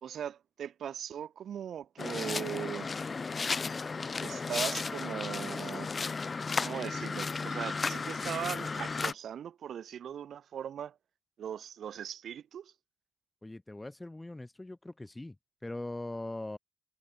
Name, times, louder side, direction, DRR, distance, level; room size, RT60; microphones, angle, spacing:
voice 1, 0.0-2.9 4.2-5.9 6.6-11.0 11.4-12.7, right 9 dB, 60° right, 1.6 m, -39 dB
sound 1, 2.0-9.1, left 4 dB, 40° left, 1.1 m, -34 dB
voice 2, 13.4-15.4 15.6-16.6, left 2 dB, 15° left, 1.8 m, -41 dB
hypercardioid pair, 40°, 0 cm